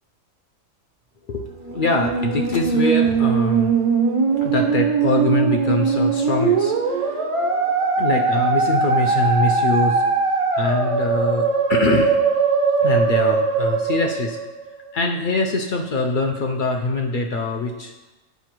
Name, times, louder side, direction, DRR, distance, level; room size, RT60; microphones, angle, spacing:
voice 1, 1.3-3.9 4.4-7.2 8.0-10.0 10.5-12.2 12.8-14.4 14.9-17.9, left 2 dB, 65° left, 2 dB, 0.5 m, -23 dB
Musical instrument, 1.5-14.9, right 5 dB, 60° right, 0.3 m, -20 dB
8.1 x 5.2 x 3.0 m, 1.1 s
omnidirectional pair, 1.4 m